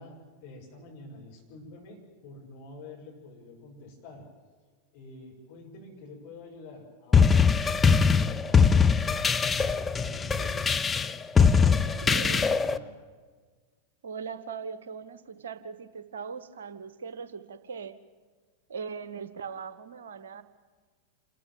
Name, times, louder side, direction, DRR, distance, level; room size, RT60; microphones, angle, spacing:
voice 1, 0.0-4.3 4.9-8.7 9.1-10.7 10.9-13.0, left 2 dB, 50° left, 0 dB, 6.5 m, -47 dB
sound 1, 7.1-12.8, left 5 dB, 15° left, 0.7 m, -22 dB
voice 2, 12.0-12.5 14.0-18.0 18.7-20.4, right 6 dB, 65° right, 13 dB, 1.1 m, -39 dB
27.5 x 14.0 x 9.0 m, 1.5 s
figure-of-eight pair, 90°, 0 cm